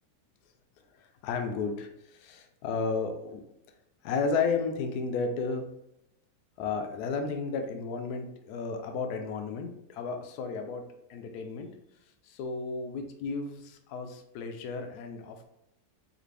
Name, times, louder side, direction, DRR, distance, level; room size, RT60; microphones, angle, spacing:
voice 1, 1.0-3.4 4.0-5.6 6.6-10.8 11.1-11.7 12.2-15.5, left 4 dB, 70° left, 5 dB, 1.0 m, -33 dB
5.0 x 2.5 x 3.3 m, 0.83 s
omnidirectional pair, 2.0 m